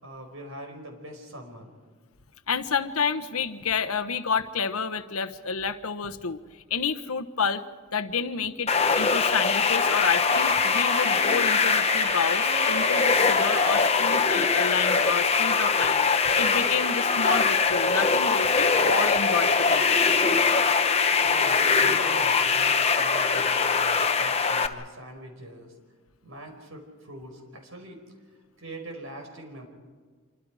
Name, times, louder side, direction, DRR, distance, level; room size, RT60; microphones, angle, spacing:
voice 1, 0.0-1.7 21.2-25.7 26.2-28.0 28.6-29.7, right 1 dB, 65° right, 3 dB, 4.9 m, -42 dB
voice 2, 2.5-7.6 7.9-20.0, left 5 dB, 80° left, 8 dB, 1.2 m, -29 dB
sound 1, 8.7-24.7, left 5 dB, 30° left, 1.0 m, -22 dB
sound 2, 10.3-13.9, right 3 dB, 45° right, 2.3 m, -36 dB
27.5 x 24.5 x 5.0 m, 1.6 s
head